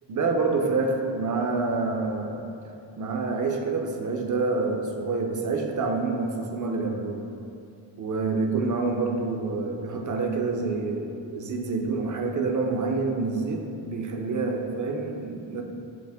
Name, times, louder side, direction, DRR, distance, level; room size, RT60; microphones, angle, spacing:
voice 1, 0.1-2.5 3.0-7.2 8.0-15.6, right 3 dB, 40° right, 2 dB, 0.6 m, -27 dB
6.0 x 2.1 x 3.4 m, 2.6 s
cardioid pair, 55°, 48 cm